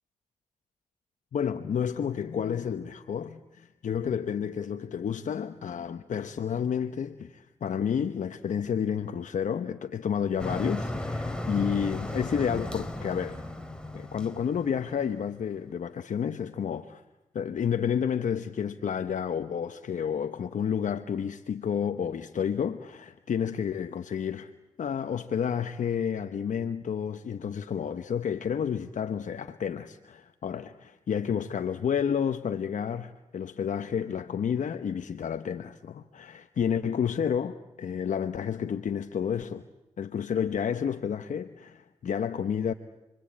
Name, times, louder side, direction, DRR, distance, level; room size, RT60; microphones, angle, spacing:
voice 1, 1.3-13.4 13.9-17.0 17.3-24.5 24.8-39.6 40.0-42.7, left 7 dB, 70° left, 1.0 m, -30 dB
Motor vehicle (road), 10.4-15.3, left 1 dB, 5° left, 4.0 m, -35 dB
29.5 x 23.0 x 8.7 m
supercardioid pair, 45°, 13 cm